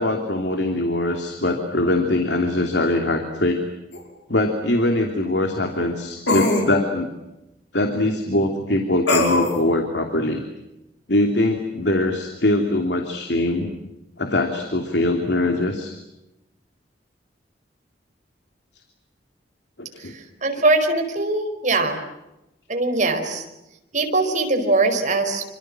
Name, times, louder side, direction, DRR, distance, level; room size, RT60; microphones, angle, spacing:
voice 1, 0.0-3.6 4.3-7.1 7.7-10.4 11.1-13.7 14.2-15.9 19.8-20.1, left 1 dB, 70° left, 4 dB, 3.0 m, -22 dB
sound 1, 3.9-4.0 6.3-6.7 9.1-9.6, left 2 dB, 90° left, 6.0 m, -20 dB
voice 2, 20.0-22.0 22.7-23.4 23.9-25.4, right 2 dB, 45° right, 5 dB, 4.9 m, -21 dB
27.5 x 26.0 x 7.6 m, 0.94 s
head